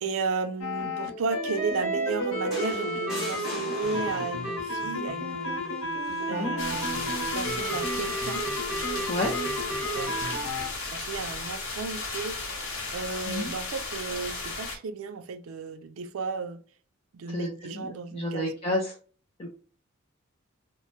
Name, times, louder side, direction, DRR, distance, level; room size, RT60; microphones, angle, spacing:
voice 1, 0.0-5.6 6.3-8.4 9.9-10.5 10.9-12.4 12.9-16.6 17.1-18.5, right 4 dB, 75° right, 0.4 m, -34 dB
sound 1, 0.6-10.7, equal, 85° left, 1.1 m, -31 dB
sound 2, 2.5-4.6 6.0-6.3, equal, ahead, 1.3 m, -38 dB
sound 3, 6.6-14.8, left 3 dB, 65° left, 0.9 m, -35 dB
voice 2, 17.3-18.9 19.4-19.5, left 1 dB, 25° left, 0.5 m, -30 dB
2.9 x 2.1 x 3.0 m
head